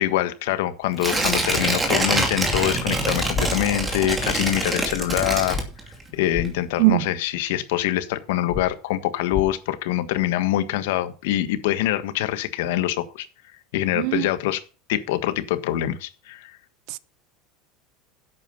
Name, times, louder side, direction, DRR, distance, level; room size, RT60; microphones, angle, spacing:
voice 1, 0.0-5.6 6.1-13.3 13.7-14.6 14.9-16.5, left 13 dB, 75° left, 1.5 m, -24 dB
Tearing, 1.0-6.1 6.4-6.5, right 2 dB, 10° right, 2.5 m, -25 dB
sound 1, 2.5-2.6 3.3-3.5 5.5-5.6 6.3-6.5 8.5-8.6 9.3-9.5, left 6 dB, 25° left, 1.1 m, -29 dB
voice 2, 13.9-14.3 16.9-17.0, right 23 dB, 55° right, 0.7 m, -20 dB
11.0 x 8.5 x 5.6 m
supercardioid pair, 160°, 0 cm